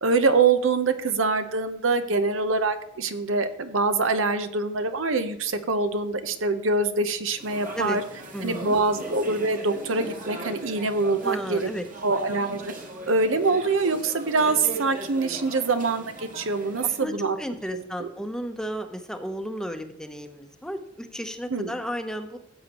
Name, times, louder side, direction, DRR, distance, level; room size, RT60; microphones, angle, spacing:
voice 1, 0.0-8.0 8.4-11.7 12.0-12.6 13.1-17.4 17.7-18.1 21.5-21.7, right 3 dB, 80° right, 9 dB, 0.9 m, -24 dB
sound 1, 7.4-17.0, right 2 dB, 45° right, 1.8 m, -39 dB
voice 2, 8.3-8.8 11.2-11.8 16.8-22.4, equal, 5° left, 6 dB, 0.8 m, -33 dB
16.0 x 7.9 x 3.0 m, 0.76 s
head